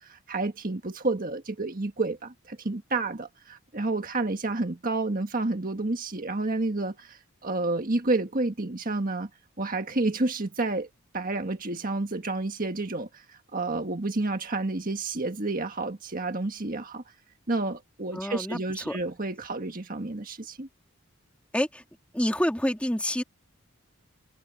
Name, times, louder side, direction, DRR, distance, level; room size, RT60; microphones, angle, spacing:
voice 1, 0.0-9.3 9.6-10.9 11.1-17.0 17.5-20.7, right 2 dB, 40° right, 1.6 m, -30 dB
voice 2, 18.1-19.0 21.5-21.8 22.1-23.2, equal, 5° left, 2.3 m, -28 dB
head